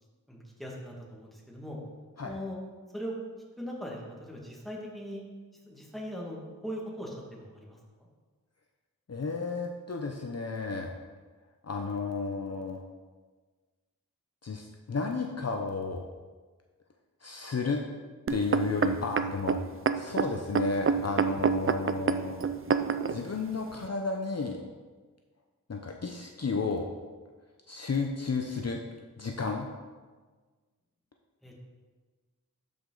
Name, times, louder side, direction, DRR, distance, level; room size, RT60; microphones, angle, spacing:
voice 1, 0.3-1.8 2.2-2.6 2.9-3.1 3.6-5.2 5.7-7.8 31.4-31.6, equal, ahead, -3 dB, 2.0 m, -40 dB
voice 2, 9.1-10.9 11.6-12.8 14.4-16.0 17.2-17.8 18.3-19.6 19.9-22.5 23.1-24.6 25.7-26.9 27.7-28.8 29.2-29.7, left 4 dB, 45° left, 2 dB, 0.7 m, -32 dB
sound 1, 18.3-23.2 23.8-23.9, right 6 dB, 40° right, 0.4 m, -27 dB
12.5 x 5.1 x 3.9 m, 1.4 s
wide cardioid pair, 75°, 35 cm